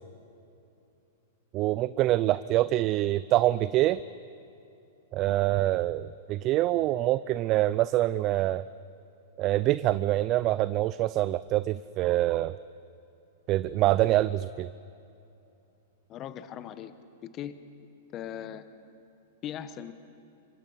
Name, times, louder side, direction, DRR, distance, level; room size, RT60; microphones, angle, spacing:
voice 1, 1.5-4.0 5.1-8.6 9.4-12.6 13.5-14.7, right 15 dB, 40° right, 15 dB, 0.5 m, -25 dB
voice 2, 16.1-16.9 17.2-17.6 18.1-18.6 19.4-19.9, left 10 dB, 35° left, 11 dB, 1.2 m, -39 dB
27.5 x 24.5 x 5.8 m, 2.7 s
hypercardioid pair, 125°, 0 cm